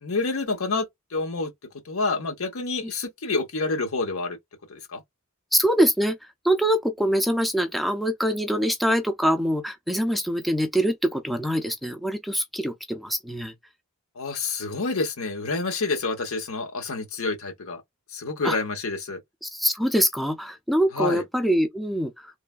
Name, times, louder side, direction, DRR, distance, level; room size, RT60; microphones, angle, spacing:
voice 1, 0.0-1.5 1.8-4.4 4.7-5.0 14.2-17.8 18.1-19.2 20.9-21.2, left 3 dB, 85° left, 0.9 m, -28 dB
voice 2, 5.5-6.2 6.4-13.5 18.4-18.6 19.4-22.4, equal, ahead, 0.3 m, -24 dB
3.2 x 2.2 x 2.3 m
head